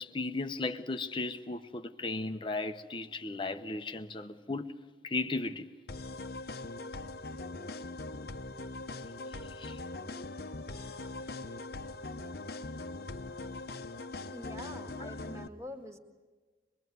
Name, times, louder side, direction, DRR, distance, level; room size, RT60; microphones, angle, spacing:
voice 1, 0.0-4.7 5.0-5.7 9.3-9.8 15.0-15.1, left 3 dB, 30° left, 0.8 m, -36 dB
sound 1, 5.9-15.5, left 2 dB, 60° left, 0.9 m, -41 dB
voice 2, 14.3-16.0, left 1 dB, 15° right, 2.0 m, -45 dB
24.0 x 23.0 x 9.4 m
head